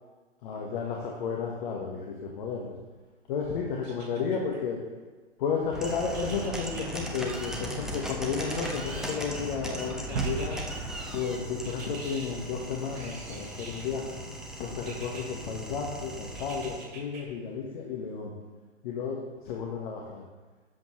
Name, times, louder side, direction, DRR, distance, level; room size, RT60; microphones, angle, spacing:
voice 1, 0.4-2.7 3.3-4.8 5.4-10.6 11.1-14.2 14.6-18.3 18.8-20.2, left 5 dB, 40° left, -1 dB, 1.6 m, -33 dB
sound 1, 3.8-4.6 6.1-6.9 8.4-9.4 10.1-10.6 11.6-12.3 12.9-13.9 14.8-15.2 16.4-17.2 17.7-17.8, right 3 dB, 25° right, 3.4 m, -45 dB
sound 2, 5.7-16.9, right 1 dB, ahead, 0.6 m, -38 dB
sound 3, 10.2-12.2, right 5 dB, 55° right, 1.6 m, -35 dB
12.5 x 8.2 x 3.3 m, 1.3 s
figure-of-eight pair, 125°, 37 cm